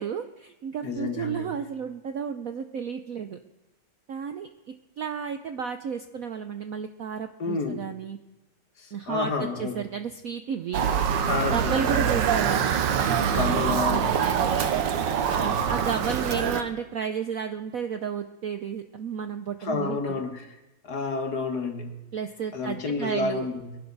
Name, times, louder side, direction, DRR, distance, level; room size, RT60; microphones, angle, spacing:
voice 1, 0.0-3.4 4.1-4.5 5.0-8.2 8.9-10.8 11.5-12.7 13.2-14.6 15.3-20.2 22.1-23.5, right 7 dB, 90° right, 8 dB, 0.7 m, -32 dB
voice 2, 0.8-1.5 7.4-7.9 8.8-9.8 11.3-12.2 13.3-14.4 15.3-15.9 19.6-20.5 20.8-22.0 22.5-23.8, left 4 dB, 50° left, 6 dB, 1.8 m, -30 dB
Motor vehicle (road) / Siren, 10.7-16.6, right 8 dB, 60° right, 1.5 m, -24 dB
22.5 x 11.5 x 4.0 m, 0.99 s
omnidirectional pair, 2.4 m